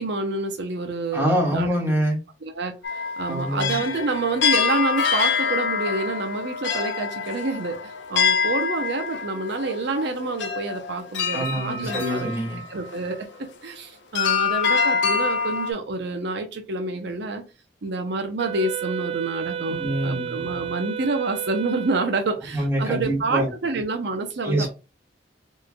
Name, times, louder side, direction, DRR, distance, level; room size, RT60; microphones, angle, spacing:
voice 1, 0.0-1.7 2.4-2.7 3.2-12.3 12.7-13.3 13.6-17.4 17.8-24.7, right 3 dB, 65° right, 0.6 m, -28 dB
voice 2, 1.1-2.2 3.3-3.8 11.3-12.6 19.8-20.4 22.5-23.5 24.4-24.7, right 1 dB, 15° right, 1.5 m, -25 dB
sound 1, 2.8-13.4 14.1-15.7, left 6 dB, 70° left, 0.6 m, -26 dB
Wind instrument woodwind instrument, 18.4-22.2, right 9 dB, 30° right, 0.4 m, -32 dB
4.4 x 3.2 x 2.2 m
head